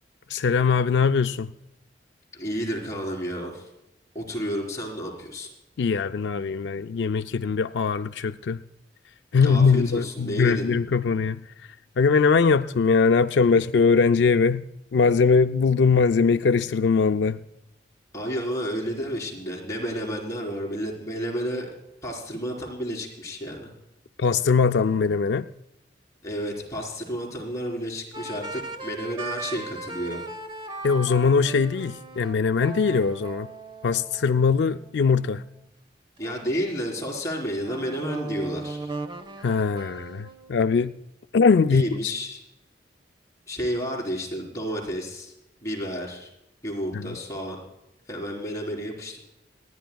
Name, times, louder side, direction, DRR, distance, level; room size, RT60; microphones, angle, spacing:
voice 1, 0.3-1.5 5.8-8.6 9.3-11.4 12.0-14.6 14.9-17.4 24.2-25.5 30.8-33.5 33.8-35.4 39.4-40.9 41.3-42.1 46.9-47.1, left 5 dB, 80° left, 0.4 m, -21 dB
voice 2, 2.3-3.6 4.1-5.5 9.4-10.7 18.1-21.7 22.0-23.7 26.2-30.2 36.2-38.9 41.7-42.4 43.5-45.3 45.6-46.3 46.6-47.6 48.1-49.2, equal, 20° left, 3.9 m, -31 dB
sound 1, 28.1-35.5 36.2-40.7, right 3 dB, 30° right, 1.0 m, -38 dB
26.5 x 10.5 x 2.3 m
head